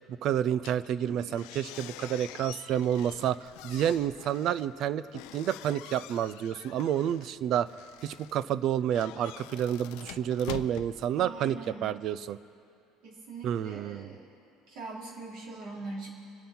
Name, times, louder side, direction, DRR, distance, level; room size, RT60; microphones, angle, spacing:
voice 1, 0.2-5.1 5.3-7.7 8.0-11.6 11.8-12.4 13.4-14.1, right 10 dB, 50° right, 17 dB, 0.4 m, -29 dB
sound 1, 0.6-11.7, left 14 dB, 75° left, 0.5 m, -46 dB
voice 2, 1.0-1.4 11.1-11.9 13.0-14.4 14.7-16.1, right 3 dB, 70° right, -4 dB, 3.6 m, -42 dB
27.5 x 9.2 x 4.4 m, 2.5 s
cardioid pair, 140°, 0 cm